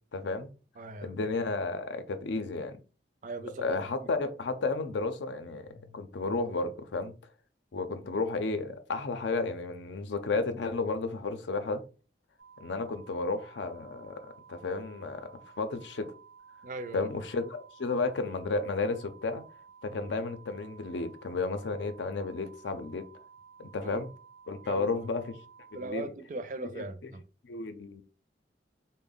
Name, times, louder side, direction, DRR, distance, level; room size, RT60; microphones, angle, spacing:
voice 1, 0.1-0.5 1.0-2.8 3.6-5.7 5.9-7.1 7.7-11.8 12.6-16.1 16.9-19.4 19.8-23.1 23.6-24.1 24.5-25.4 25.7-26.1 26.7-26.8 27.4-28.0, left 3 dB, 85° left, 0.5 m, -32 dB
voice 2, 0.8-1.1 3.2-4.1 5.7-6.0 16.6-17.1 19.9-20.0 23.8-24.0 24.6-25.1 25.7-27.3, right 2 dB, 45° right, 0.4 m, -40 dB
sound 1, 12.4-25.9, right 6 dB, 75° right, 0.8 m, -55 dB
3.5 x 2.1 x 3.9 m
head